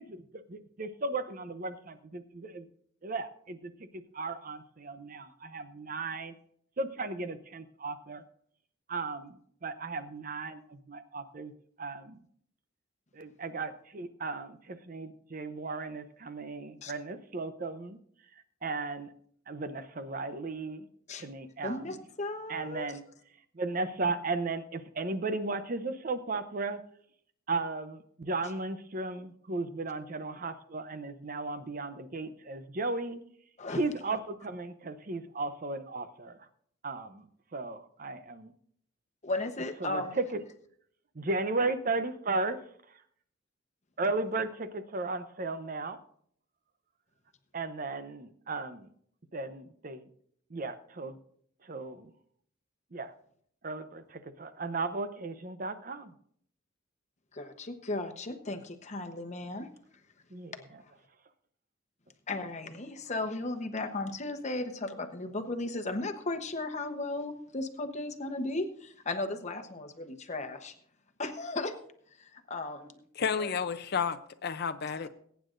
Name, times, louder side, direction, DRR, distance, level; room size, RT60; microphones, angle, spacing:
voice 1, 0.0-2.7 3.0-6.4 6.8-8.2 8.9-11.5 11.8-12.2 13.1-18.0 18.6-19.1 19.5-20.9 21.2-22.0 22.5-23.0 23.5-26.8 27.5-33.2 33.7-36.5 36.8-37.3 37.5-38.5 39.8-40.4 41.1-42.6 44.0-46.0 47.5-48.9 49.3-50.1 50.5-51.2 51.6-52.1 52.9-53.1 53.6-56.1 60.3-60.5, right 3 dB, 45° right, 10 dB, 0.7 m, -35 dB
voice 2, 21.6-22.9 33.6-33.8 39.2-40.2 57.3-59.7 60.8-60.9 62.3-70.7 71.2-71.7 72.2-73.0 73.4-73.6 74.9-75.1, left 2 dB, 35° left, 7 dB, 1.0 m, -36 dB
voice 3, 73.2-75.1, left 6 dB, 55° left, 11 dB, 0.6 m, -31 dB
21.5 x 9.2 x 2.6 m, 0.65 s
head